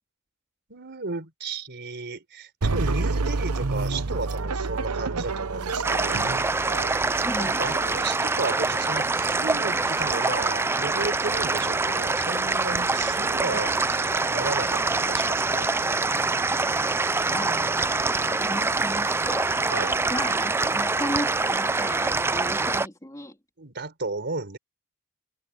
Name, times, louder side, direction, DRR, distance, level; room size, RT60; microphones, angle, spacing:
voice 1, 0.7-6.4 7.4-15.7 19.7-20.0 23.6-24.6, right 3 dB, 50° right, 4.0 m, -34 dB
sound 1, 2.6-8.1, right 3 dB, 85° right, 1.0 m, -29 dB
sound 2, 5.8-22.9, right 3 dB, 10° right, 0.3 m, -25 dB
voice 2, 7.2-7.6 13.4-13.6 17.3-17.6 18.3-23.4, left 1 dB, 15° left, 3.1 m, -35 dB
head